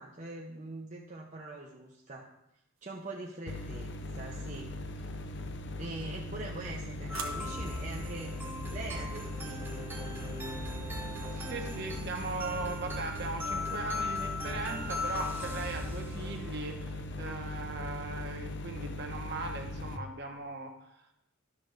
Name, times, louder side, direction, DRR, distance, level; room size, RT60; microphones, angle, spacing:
voice 1, 0.0-2.3 2.8-5.1 5.8-8.4 8.7-10.6, right 2 dB, 35° right, -2 dB, 0.7 m, -43 dB
sound 1, 2.8-3.5 5.9-8.0, right 6 dB, 75° right, 1.1 m, -48 dB
sound 2, 3.5-20.0, left 2 dB, 55° left, 0.6 m, -40 dB
sound 3, 7.1-16.8, left 2 dB, 10° right, 1.0 m, -39 dB
voice 2, 11.3-20.7, right 3 dB, 50° right, 3 dB, 1.1 m, -39 dB
11.5 x 3.8 x 6.4 m, 0.83 s
head